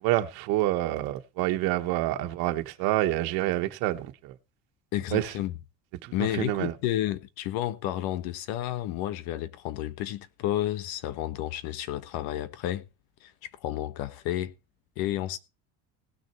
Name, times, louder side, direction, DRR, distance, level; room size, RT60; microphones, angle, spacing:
voice 1, 0.0-4.3 5.1-5.3 6.0-6.7, right 15 dB, 70° right, 1.5 m, -27 dB
voice 2, 4.9-5.5 6.1-12.8 13.2-13.3 13.6-14.5 15.0-15.4, left 13 dB, 75° left, 1.3 m, -31 dB
18.0 x 6.5 x 4.5 m
cardioid pair, 140°, 36 cm